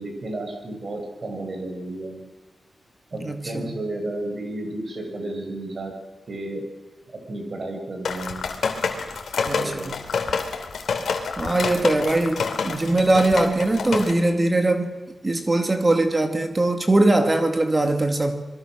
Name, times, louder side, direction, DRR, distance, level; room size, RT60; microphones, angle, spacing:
voice 1, 0.0-2.2 3.1-5.9 6.3-6.6 7.3-8.5 9.5-9.9 10.2-10.5, right 2 dB, 45° right, 6.5 m, -32 dB
voice 2, 3.2-3.7 9.4-10.0 11.4-14.9 15.2-18.4, right 2 dB, 25° right, 2.5 m, -21 dB
sound 1, 8.0-14.1, left 5 dB, 80° left, 3.0 m, -27 dB
26.5 x 23.0 x 6.5 m
wide cardioid pair, 125°, 0 cm